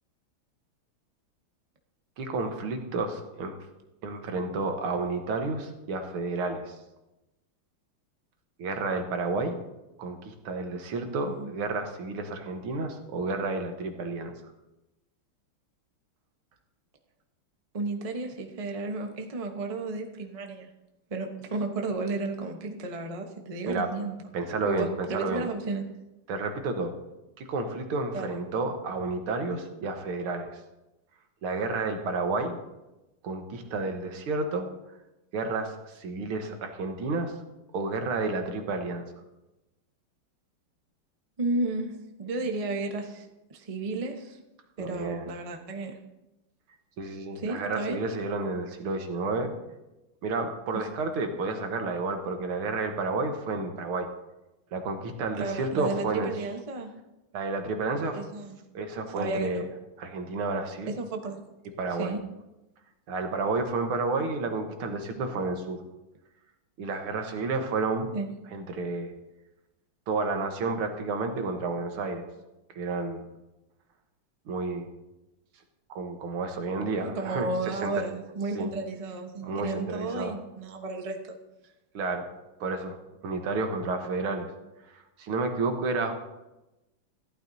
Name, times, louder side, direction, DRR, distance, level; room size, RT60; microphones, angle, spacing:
voice 1, 2.2-3.6 4.0-6.8 8.6-9.6 10.0-14.3 23.7-23.9 24.3-25.5 26.3-27.0 27.4-30.6 31.4-32.6 33.2-34.7 35.3-37.3 37.7-39.0 44.8-45.3 47.0-49.5 50.2-54.1 54.7-56.3 57.3-58.2 58.7-59.7 60.0-60.9 61.8-62.1 63.1-65.8 66.8-68.1 68.5-69.1 70.1-72.2 72.7-73.2 74.5-74.9 75.9-78.1 78.6-78.7 79.4-80.4 81.9-82.3 82.6-83.0 83.2-84.5 84.9-86.1, right 3 dB, 75° right, 5 dB, 2.0 m, -31 dB
voice 2, 17.7-20.7 21.1-24.2 24.6-25.8 28.1-28.4 41.4-44.4 44.8-46.0 47.3-48.0 50.7-50.8 55.4-56.9 58.1-58.6 59.1-59.7 60.9-61.4 62.0-62.2 68.1-68.3 77.0-81.2, right 3 dB, 35° right, 3 dB, 0.6 m, -33 dB
15.0 x 12.0 x 2.7 m, 0.98 s
omnidirectional pair, 2.4 m